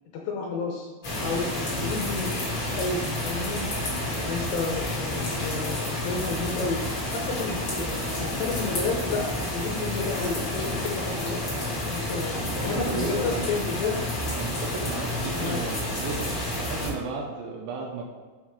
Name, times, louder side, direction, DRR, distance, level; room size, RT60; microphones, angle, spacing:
voice 1, 0.1-0.9 1.2-3.6 4.2-6.8 7.1-11.4 11.9-14.0 15.4-15.6 16.0-16.2, left 4 dB, 80° left, 0 dB, 2.6 m, -31 dB
sound 1, 1.0-16.9, left 1 dB, 50° left, 1.4 m, -30 dB
voice 2, 12.4-13.5 14.3-16.3 16.7-18.0, right 4 dB, 75° right, 0 dB, 2.8 m, -34 dB
6.7 x 6.2 x 4.8 m, 1.4 s
omnidirectional pair, 5.7 m